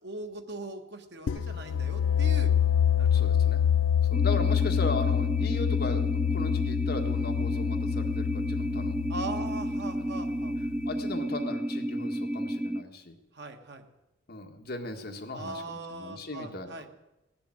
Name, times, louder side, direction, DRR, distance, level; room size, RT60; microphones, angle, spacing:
voice 1, 0.0-2.5 3.0-3.3 9.1-10.5 13.3-13.8 15.3-16.9, right 2 dB, 60° right, 5 dB, 1.5 m, -40 dB
sound 1, 1.3-10.9, left 9 dB, 90° left, 0.4 m, -27 dB
voice 2, 3.1-3.6 4.1-9.0 9.3-9.4 9.9-10.1 10.8-13.1 14.3-16.9, left 2 dB, 55° left, 4 dB, 1.7 m, -38 dB
sound 2, 4.1-12.8, equal, 5° right, 0.4 m, -32 dB
17.0 x 7.0 x 8.9 m, 0.97 s
head